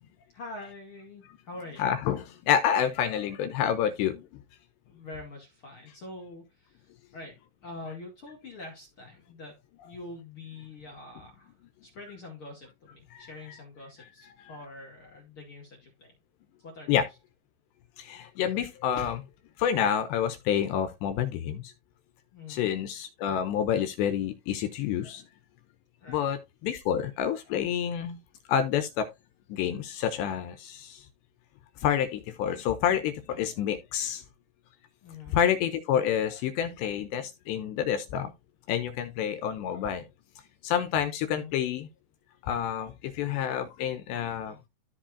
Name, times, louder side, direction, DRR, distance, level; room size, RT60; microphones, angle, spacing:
voice 1, 0.3-1.9 4.8-7.4 7.6-11.5 11.8-16.1 16.6-17.0 22.3-22.7 26.0-26.2 35.0-35.4 41.3-41.5, left 2 dB, 50° left, 1.6 m, -45 dB
voice 2, 1.8-4.3 13.1-13.3 16.9-17.0 18.0-19.2 19.6-21.7 22.5-25.2 26.1-28.2 28.5-29.1 29.5-31.0 31.8-34.2 35.3-38.3 38.7-40.0 40.6-41.9 42.4-44.7, left 9 dB, 80° left, 2.6 m, -28 dB
14.0 x 4.8 x 2.7 m
omnidirectional pair, 5.7 m